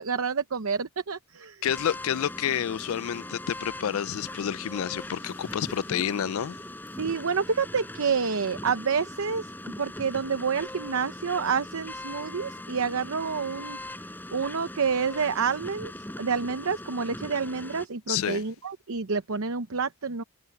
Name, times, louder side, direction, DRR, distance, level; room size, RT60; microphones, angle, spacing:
voice 1, 0.0-1.6 7.0-13.8 14.3-15.9 16.2-20.2, right 5 dB, 75° right, 0.8 m, -28 dB
voice 2, 1.6-6.6 18.1-18.4, left 9 dB, 75° left, 0.4 m, -29 dB
sound 1, 1.7-17.9, left 1 dB, 10° left, 4.6 m, -40 dB
head